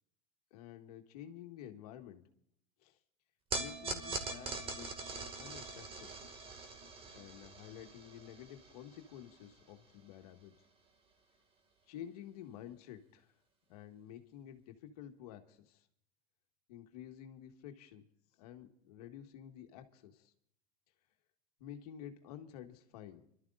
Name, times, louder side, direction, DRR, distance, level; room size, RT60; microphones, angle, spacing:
voice 1, 0.5-2.2 2.8-3.0 3.5-6.1 7.1-10.5 11.9-13.3 13.7-15.8 16.7-18.0 18.4-20.3 21.6-23.2, left 10 dB, 80° left, 5 dB, 1.7 m, -51 dB
sound 1, 3.5-9.9, right 3 dB, 30° right, 2.1 m, -43 dB
29.5 x 12.5 x 2.5 m, 0.68 s
supercardioid pair, 120°, 19 cm